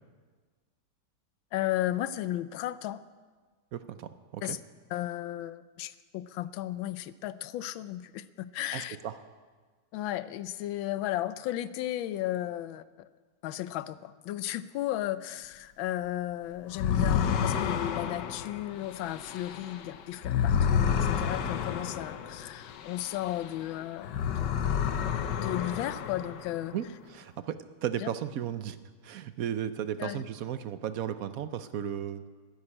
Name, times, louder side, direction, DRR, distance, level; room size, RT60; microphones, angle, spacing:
voice 1, 1.5-3.0 4.4-4.6 4.9-9.0 9.9-13.1 13.4-24.1 24.4-24.5 25.3-26.7 28.0-28.1 30.0-30.2, left 13 dB, 90° left, 15 dB, 1.4 m, -34 dB
voice 2, 3.7-4.6 8.7-9.2 26.7-28.8 29.0-32.2, right 9 dB, 65° right, 12 dB, 0.9 m, -35 dB
sound 1, 16.7-23.6 24.0-26.7, left 8 dB, 65° left, 1.4 m, -30 dB
13.0 x 10.5 x 9.9 m, 1.5 s
omnidirectional pair, 2.1 m